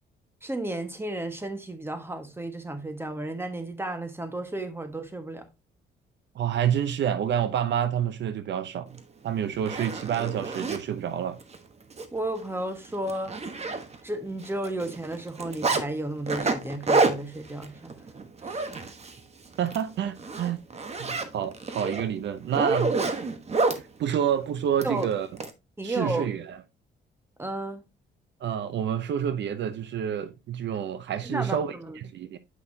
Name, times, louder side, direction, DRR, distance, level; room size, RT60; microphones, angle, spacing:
voice 1, 0.4-5.5 12.1-13.4 14.0-17.9 18.4-18.7 24.8-25.1 25.8-26.3 27.4-27.9 31.2-32.0, right 1 dB, 10° right, 1.5 m, -33 dB
voice 2, 6.3-11.4 19.6-20.6 21.0-22.9 23.7-25.3 25.8-26.6 28.4-32.4, right 9 dB, 65° right, 0.6 m, -28 dB
Zipper (clothing), 9.0-9.1 9.5-10.8 11.4-11.6 11.9-12.1 12.4-12.5 12.9-14.2 14.4-15.8 16.3-19.2 19.6-19.8 20.2-23.8 24.8-25.5, right 3 dB, 30° right, 1.2 m, -28 dB
8.3 x 5.5 x 2.7 m
cardioid pair, 90°, 20 cm